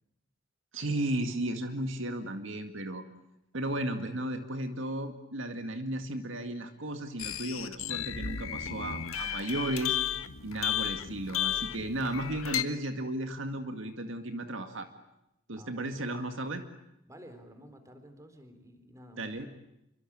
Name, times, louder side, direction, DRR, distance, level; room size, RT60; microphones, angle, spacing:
voice 1, 0.7-3.0 3.5-10.0 10.4-14.9 15.5-16.6 19.2-19.5, right 1 dB, 65° right, 7 dB, 2.0 m, -34 dB
sound 1, 7.2-12.6, left 10 dB, 80° left, 1.6 m, -33 dB
voice 2, 15.5-16.0 17.1-19.4, equal, 15° right, 8 dB, 4.0 m, -52 dB
27.5 x 24.5 x 8.8 m, 0.86 s
head